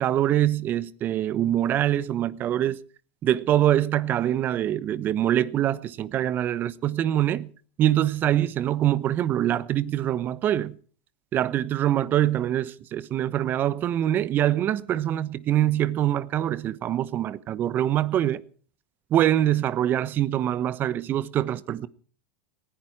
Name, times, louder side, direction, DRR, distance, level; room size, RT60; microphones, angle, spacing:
voice 1, 0.0-2.8 3.2-7.5 7.8-10.8 11.3-18.4 19.1-21.9, right 12 dB, 40° right, 1.0 m, -24 dB
19.0 x 15.5 x 4.8 m
hypercardioid pair, 95°, 5 cm